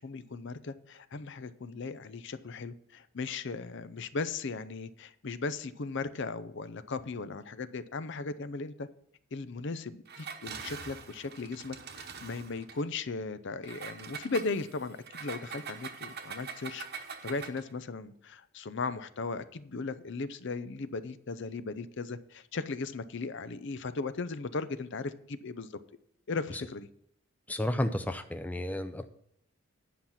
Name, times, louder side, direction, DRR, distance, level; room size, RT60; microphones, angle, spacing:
voice 1, 0.0-8.9 9.3-25.7 26.3-26.9, left 3 dB, 55° left, 13 dB, 0.6 m, -37 dB
Engine, 10.1-12.8 13.6-17.7, right 6 dB, 45° right, 1.0 m, -43 dB
voice 2, 27.5-29.1, left 1 dB, 5° left, 9 dB, 0.5 m, -32 dB
10.5 x 5.8 x 7.3 m, 0.72 s
head